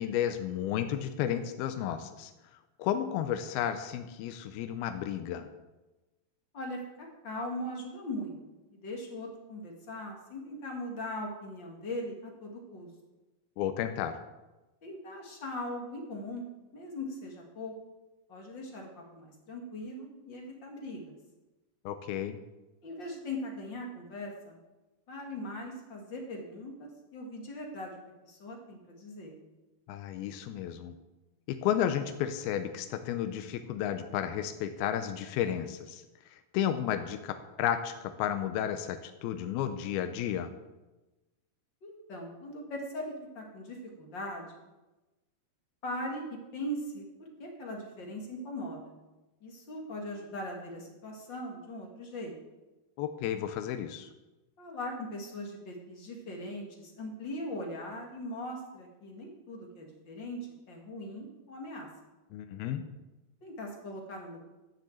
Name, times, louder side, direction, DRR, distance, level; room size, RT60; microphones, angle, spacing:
voice 1, 0.0-2.3 2.8-5.5 13.6-14.2 21.9-22.4 29.9-30.9 31.5-36.0 36.3-40.5 53.0-54.1 62.3-62.9, left 10 dB, 85° left, 8 dB, 2.6 m, -32 dB
voice 2, 6.5-8.4 8.7-12.9 14.8-16.4 16.7-17.7 18.3-21.2 22.8-24.6 25.1-29.4 41.8-44.7 45.8-47.1 47.4-48.9 49.4-52.3 54.6-60.4 60.7-61.9 63.4-64.4, left 1 dB, 40° left, 0 dB, 1.9 m, -40 dB
12.0 x 7.3 x 7.8 m, 1.1 s
omnidirectional pair, 4.4 m